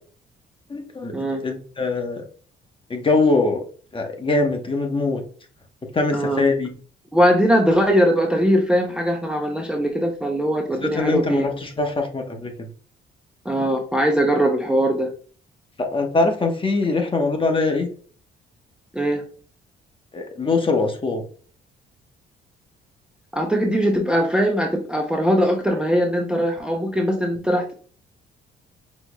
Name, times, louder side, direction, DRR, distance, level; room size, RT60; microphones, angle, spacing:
voice 1, 0.7-2.2 2.9-3.6 3.9-5.2 5.9-6.7 10.8-12.7 15.8-17.9 20.1-21.2, left 3 dB, 25° left, 3 dB, 1.0 m, -22 dB
voice 2, 6.1-6.4 7.1-11.5 13.4-15.1 18.9-19.2 23.3-27.7, equal, 5° right, 1 dB, 0.6 m, -20 dB
5.9 x 3.0 x 2.2 m, 0.42 s
cardioid pair, 90°, 20 cm